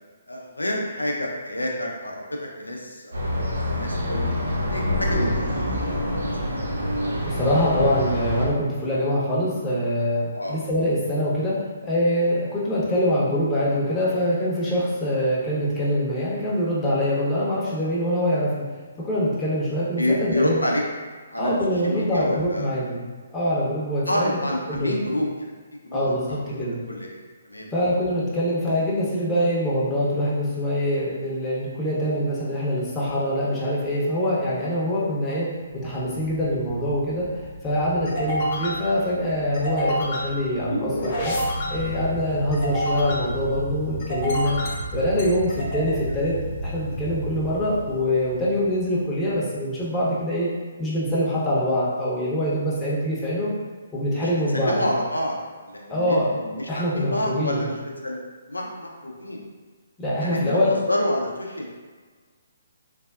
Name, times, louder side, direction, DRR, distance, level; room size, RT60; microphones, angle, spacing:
voice 1, 0.3-4.3 4.7-5.4 6.3-6.7 10.3-10.6 20.0-20.8 21.3-22.7 24.1-25.5 25.8-27.2 27.4-27.7 35.2-35.4 38.6-38.7 54.2-55.4 55.6-57.8 58.0-58.2 58.5-59.4 60.2-61.7, left 1 dB, 90° left, -1 dB, 0.5 m, -28 dB
sound 1, 3.1-8.5, left 1 dB, 80° right, 0.6 m, -26 dB
voice 2, 7.2-11.5 11.8-18.6 19.0-20.6 21.4-23.0 23.3-24.4 24.7-25.0 25.9-26.7 27.7-35.5 35.8-37.3 37.6-41.3 41.7-44.6 44.9-46.4 46.6-50.5 50.8-53.5 53.9-54.8 55.9-56.3 56.7-57.6 60.0-60.7, equal, 15° left, -8 dB, 0.7 m, -24 dB
sound 2, 35.7-48.5, equal, 45° left, 0.6 m, -30 dB
3.3 x 2.2 x 2.3 m, 1.5 s
figure-of-eight pair, 135°, 0 cm